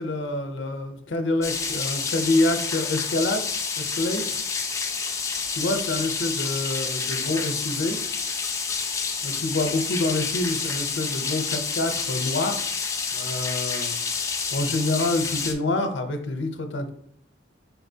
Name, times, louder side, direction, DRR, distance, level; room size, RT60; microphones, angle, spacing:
voice 1, 0.0-3.4 3.8-4.2 5.5-8.0 9.2-12.7 13.1-14.0 14.5-16.9, left 2 dB, 90° left, 6 dB, 0.6 m, -27 dB
sound 1, 1.4-15.5, left 5 dB, 15° left, 0.4 m, -29 dB
4.6 x 4.1 x 2.7 m, 0.66 s
head